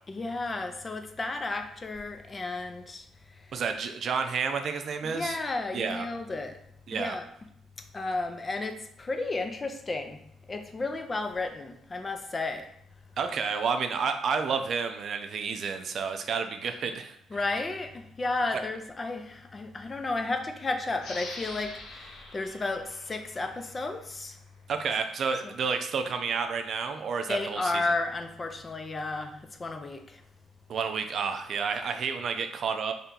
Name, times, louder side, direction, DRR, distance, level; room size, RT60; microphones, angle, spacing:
voice 1, 0.1-3.6 5.0-6.6 6.9-7.2 7.9-10.2 10.5-12.7 17.3-24.4 25.4-25.6 27.3-30.2, left 3 dB, 30° left, 6 dB, 0.5 m, -33 dB
voice 2, 3.5-5.4 5.7-6.1 6.9-7.2 13.2-17.1 24.7-27.9 30.7-32.9, right 5 dB, 60° right, 7 dB, 0.4 m, -30 dB
sound 1, 21.0-24.2, left 3 dB, 80° left, 0.7 m, -44 dB
3.3 x 2.8 x 3.7 m, 0.71 s
cardioid pair, 90°, 0 cm